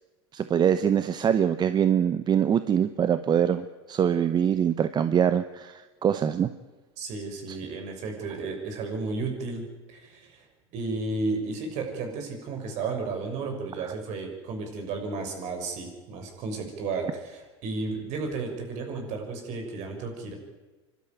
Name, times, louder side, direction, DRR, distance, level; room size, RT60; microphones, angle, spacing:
voice 1, 0.3-6.5 7.5-7.6, right 8 dB, 30° right, 12 dB, 0.9 m, -24 dB
voice 2, 7.0-10.5 10.7-20.3, right 3 dB, 55° right, 3 dB, 6.4 m, -33 dB
26.5 x 12.5 x 9.5 m, 1.2 s
hypercardioid pair, 100°, 14 cm